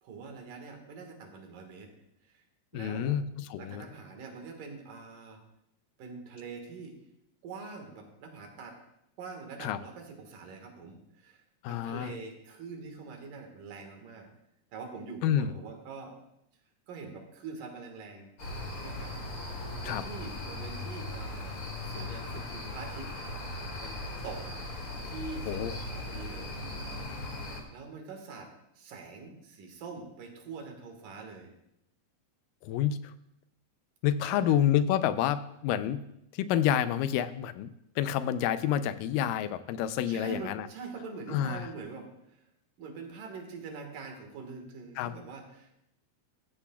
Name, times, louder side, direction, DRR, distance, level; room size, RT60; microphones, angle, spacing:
voice 1, 0.0-1.9 2.2-2.4 2.7-3.2 3.6-5.4 6.0-7.0 7.4-8.8 9.2-11.4 11.7-14.3 14.7-16.2 16.9-18.3 18.8-19.1 19.5-21.6 21.8-23.1 23.8-24.4 25.0-26.5 26.9-27.1 27.7-31.5 34.2-34.6 40.1-42.4 42.8-45.7, right 4 dB, 75° right, 3 dB, 3.2 m, -44 dB
voice 2, 2.7-3.8 9.6-9.8 11.6-12.1 15.2-15.5 19.8-20.0 25.5-25.7 32.6-33.0 34.0-36.0 36.3-37.7 38.0-40.7 41.3-41.7 45.0-45.1, left 10 dB, 90° left, 13 dB, 2.2 m, -28 dB
sound 1, 18.4-27.6, left 2 dB, 40° left, 2.4 m, -38 dB
14.5 x 14.0 x 2.3 m, 0.80 s
omnidirectional pair, 3.8 m